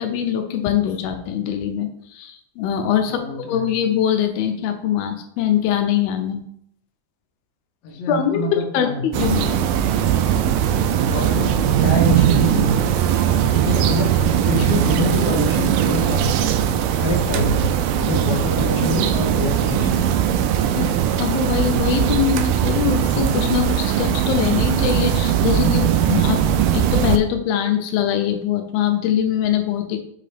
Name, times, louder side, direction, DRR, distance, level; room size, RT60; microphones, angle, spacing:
voice 1, 0.0-6.4 8.1-8.4 8.7-9.5 20.8-26.4 26.7-30.0, left 9 dB, 85° left, 6 dB, 2.5 m, -22 dB
voice 2, 3.1-3.7 7.8-9.5 11.0-13.0 13.3-16.5 17.0-20.2, left 2 dB, 60° left, 0 dB, 2.3 m, -26 dB
sound 1, 9.1-27.2, right 10 dB, 80° right, 2.0 m, -19 dB
7.6 x 2.9 x 4.9 m, 0.69 s
omnidirectional pair, 4.2 m